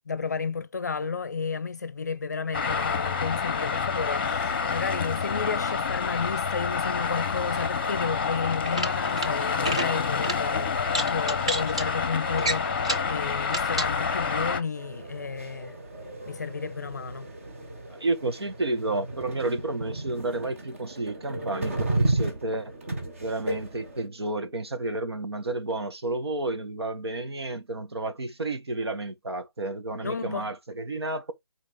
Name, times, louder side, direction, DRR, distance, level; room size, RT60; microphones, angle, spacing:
voice 1, 0.1-10.7 11.0-15.7 16.3-17.3 30.0-30.5, left 5 dB, 40° left, 0.6 m, -32 dB
Traffic noise roadway noise, 2.5-14.6, left 5 dB, 25° left, 0.9 m, -28 dB
sound 1, 8.6-9.3 9.6-9.9 10.2-10.4 10.9-11.8 12.4-13.1 13.5-13.9, right 1 dB, 15° right, 0.4 m, -29 dB
sound 2, 14.7-24.1, right 2 dB, 35° right, 1.6 m, -33 dB
voice 2, 17.9-22.7 23.2-31.3, right 2 dB, 75° right, 1.9 m, -31 dB
7.7 x 4.1 x 3.7 m
hypercardioid pair, 175°, 14 cm